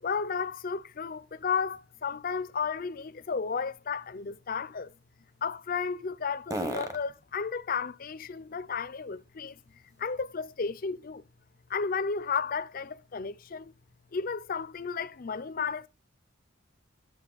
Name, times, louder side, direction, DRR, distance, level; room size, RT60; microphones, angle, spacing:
voice 1, 0.0-4.9 5.4-9.6 10.0-11.2 11.7-13.7 14.1-15.9, left 5 dB, 45° left, 0.5 m, -33 dB
sound 1, 8.2-10.6 11.0-14.8, right 1 dB, 15° right, 1.0 m, -46 dB
9.8 x 6.9 x 4.0 m
head